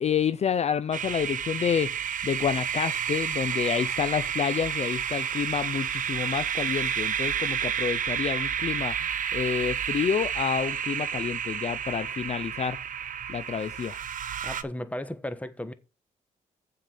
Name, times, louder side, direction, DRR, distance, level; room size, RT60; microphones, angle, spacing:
voice 1, 0.0-1.9 2.2-9.0 9.3-12.8 13.3-14.0, left 7 dB, 45° left, 0.5 m, -29 dB
sound 1, 0.9-14.6, right 8 dB, 60° right, 0.8 m, -30 dB
voice 2, 14.4-15.7, left 1 dB, 10° left, 1.2 m, -35 dB
7.3 x 5.6 x 7.1 m
supercardioid pair, 65°, 16 cm